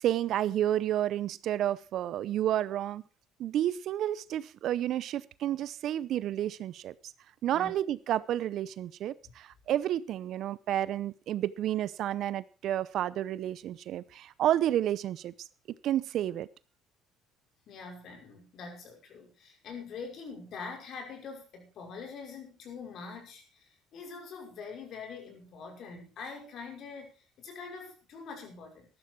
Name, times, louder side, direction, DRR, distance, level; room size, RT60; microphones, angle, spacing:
voice 1, 0.0-3.0 3.4-6.9 7.4-15.3 15.8-16.5, right 12 dB, 65° right, 19 dB, 0.7 m, -30 dB
voice 2, 17.7-28.9, left 5 dB, 60° left, 3 dB, 5.7 m, -44 dB
13.5 x 12.5 x 4.6 m, 0.34 s
supercardioid pair, 70°, 0 cm